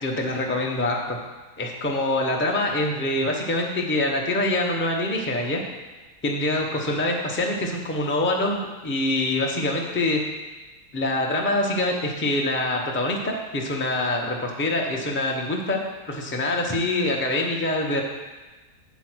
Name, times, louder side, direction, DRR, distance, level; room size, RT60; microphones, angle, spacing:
voice 1, 0.0-1.2 1.6-5.6 6.2-10.2 10.9-18.0, left 2 dB, 10° left, 0 dB, 0.5 m, -25 dB
8.1 x 4.6 x 6.1 m, 1.2 s
omnidirectional pair, 1.7 m